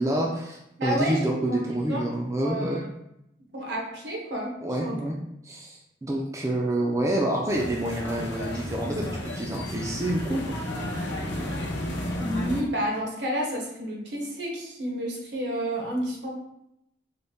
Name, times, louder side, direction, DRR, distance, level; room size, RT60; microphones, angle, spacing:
voice 1, 0.0-2.8 4.6-5.2 5.4-10.6, right 1 dB, 15° right, -1 dB, 0.3 m, -28 dB
voice 2, 0.8-2.0 2.4-2.8 3.5-4.6 4.8-5.0 12.2-16.3, equal, 75° right, -1 dB, 0.9 m, -30 dB
sound 1, 7.5-12.6, left 1 dB, 85° left, 0.7 m, -32 dB
4.0 x 2.1 x 3.5 m, 0.80 s
head